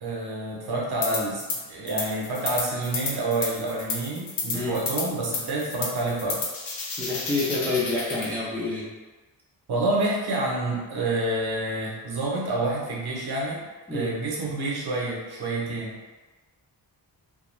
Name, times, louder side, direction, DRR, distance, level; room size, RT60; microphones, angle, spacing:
voice 1, 0.0-6.4 9.7-13.6 13.9-16.0, right 2 dB, 60° right, -3 dB, 0.7 m, -28 dB
sound 1, 1.0-1.6 1.9-8.3, left 4 dB, 75° left, 0.6 m, -31 dB
voice 2, 7.0-8.8 13.9-14.1, left 3 dB, 5° left, -7 dB, 0.5 m, -28 dB
2.4 x 2.2 x 3.0 m, 1.3 s
wide cardioid pair, 145°, 43 cm